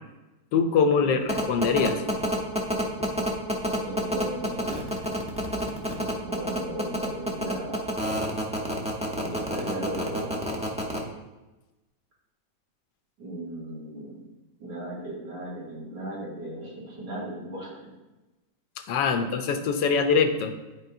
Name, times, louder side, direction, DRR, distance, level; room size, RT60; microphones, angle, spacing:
voice 1, 0.5-2.0 18.9-20.5, left 5 dB, 85° left, 7 dB, 1.4 m, -23 dB
sound 1, 1.3-11.0, equal, 5° right, 0.5 m, -28 dB
voice 2, 3.8-4.7 6.1-7.9 9.1-10.7 13.2-14.2 14.6-17.9 19.1-19.3, right 1 dB, 85° right, -7 dB, 3.0 m, -36 dB
11.5 x 4.7 x 2.7 m, 1.1 s
omnidirectional pair, 1.9 m